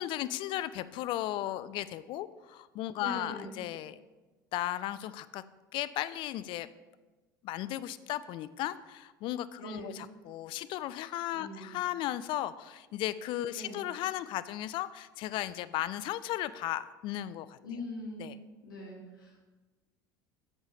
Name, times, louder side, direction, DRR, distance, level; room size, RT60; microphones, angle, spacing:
voice 1, 0.0-4.0 4.5-5.4 5.7-6.7 7.4-17.6 18.2-18.4, left 13 dB, 50° left, 15 dB, 0.4 m, -35 dB
voice 2, 3.0-3.6 9.6-10.0 11.3-11.7 13.5-13.8 17.6-18.3 18.6-19.4, left 1 dB, 80° left, -3 dB, 2.0 m, -42 dB
9.1 x 7.0 x 3.3 m, 1.2 s
figure-of-eight pair, 70°, 11 cm